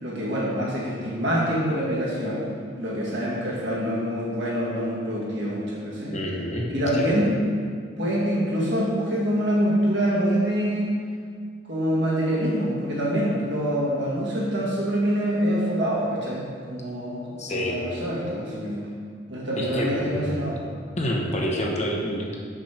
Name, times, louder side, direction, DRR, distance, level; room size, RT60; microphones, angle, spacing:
voice 1, 0.0-2.5 2.8-6.2 6.7-7.4 8.0-10.9 11.7-18.8 19.3-20.6, equal, 65° right, -5 dB, 1.9 m, -25 dB
voice 2, 6.1-7.1 17.4-17.8 19.6-20.4 21.0-22.4, equal, 40° left, -1 dB, 1.0 m, -28 dB
6.5 x 6.0 x 4.4 m, 2.1 s
head